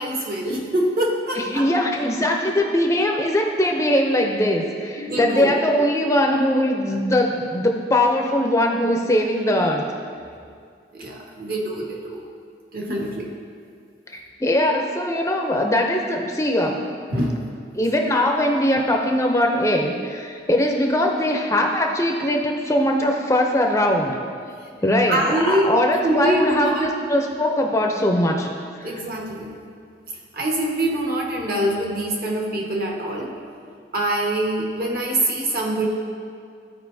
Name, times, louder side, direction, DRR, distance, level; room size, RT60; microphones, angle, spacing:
voice 1, 0.0-1.7 5.0-5.5 5.8-5.9 10.9-12.2 12.7-13.3 17.1-17.4 24.6-24.7 25.1-25.7 26.0-26.9 28.8-29.5 30.3-33.3 33.9-35.9, right 1 dB, 55° right, -1 dB, 1.3 m, -24 dB
voice 2, 1.4-9.8 14.1-16.8 17.8-24.2 24.8-28.5 28.8-28.9, left 1 dB, 15° left, 1 dB, 0.5 m, -21 dB
14.5 x 4.9 x 2.7 m, 2.2 s
head